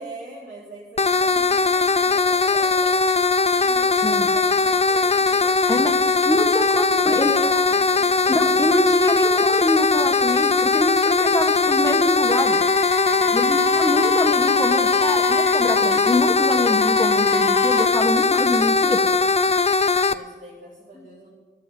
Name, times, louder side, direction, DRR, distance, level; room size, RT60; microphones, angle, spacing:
voice 1, 0.0-2.8 3.5-6.0 6.7-8.8 13.0-13.6 20.1-21.3, right 2 dB, 65° right, -9 dB, 4.3 m, -42 dB
sound 1, 1.0-20.1, left 4 dB, 35° left, 0.5 m, -19 dB
voice 2, 6.2-7.3 8.3-12.6 13.3-19.1 21.0-21.1, left 1 dB, 15° left, 5 dB, 1.3 m, -25 dB
Wind instrument woodwind instrument, 12.3-17.9, left 6 dB, 85° left, 0.7 m, -29 dB
12.0 x 7.1 x 9.0 m, 1.4 s
cardioid pair, 55°, 19 cm